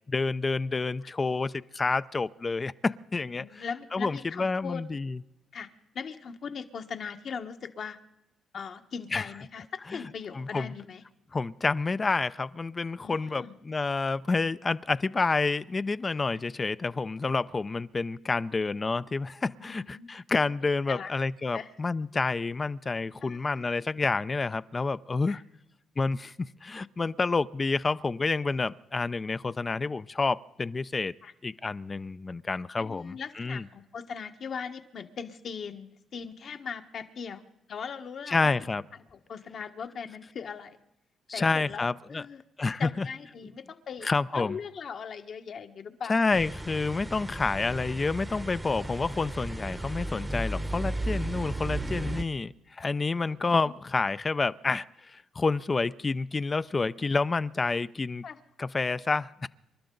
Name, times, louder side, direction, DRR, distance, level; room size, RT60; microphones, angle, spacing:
voice 1, 0.1-3.6 3.9-5.2 9.1-9.2 10.3-10.7 11.3-25.4 26.0-31.1 31.4-33.6 38.3-38.8 41.3-42.2 42.6-43.1 44.0-44.6 46.1-58.2 58.6-59.5, left 3 dB, 30° left, 15 dB, 0.4 m, -29 dB
voice 2, 3.4-4.8 5.5-5.7 5.9-8.0 8.5-9.6 9.9-11.0 13.0-13.5 19.6-20.1 20.9-21.1 21.5-21.7 23.2-23.7 25.3-25.4 31.2-31.3 32.8-38.5 39.1-40.8 41.3-42.4 42.8-46.2 53.1-53.7 58.2-58.4, left 6 dB, 55° left, 7 dB, 1.3 m, -39 dB
sound 1, 46.3-52.2, right 2 dB, 15° right, 0.9 m, -34 dB
27.5 x 12.0 x 3.9 m, 0.91 s
cardioid pair, 90°, 0 cm